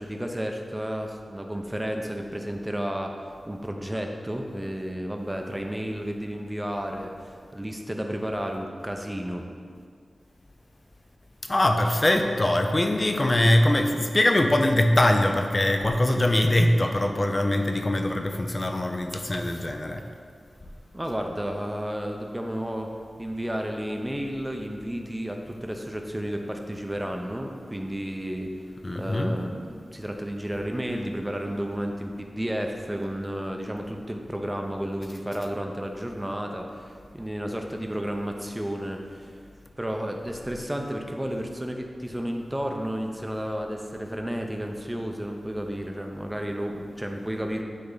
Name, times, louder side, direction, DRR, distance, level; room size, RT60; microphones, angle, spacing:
voice 1, 0.0-3.1 3.5-7.1 7.5-9.5 20.9-22.9 23.2-28.5 28.9-39.3 39.8-47.6, equal, 10° right, 3 dB, 0.7 m, -32 dB
voice 2, 11.4-20.0 28.8-29.4, left 1 dB, 30° left, 5 dB, 0.6 m, -22 dB
9.6 x 3.5 x 4.0 m, 2.1 s
wide cardioid pair, 70°, 0 cm